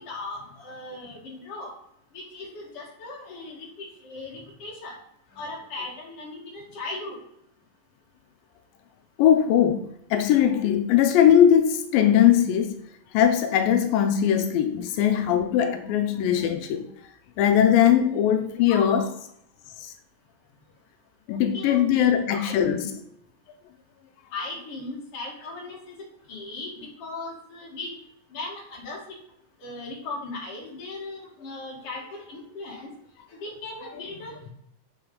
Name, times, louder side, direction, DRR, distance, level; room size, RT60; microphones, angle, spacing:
voice 1, 0.0-1.7 2.1-5.0 5.3-7.2 14.7-14.8 18.4-19.1 21.3-22.9 24.3-26.0 26.3-28.0 28.3-29.0 29.6-32.9 33.3-34.5, left 3 dB, 45° left, 2.8 m, -38 dB
voice 2, 9.2-12.8 13.1-16.9 17.4-19.1 19.8-19.9 21.3-23.0, left 9 dB, 85° left, 2.4 m, -20 dB
7.6 x 6.6 x 3.9 m
omnidirectional pair, 3.9 m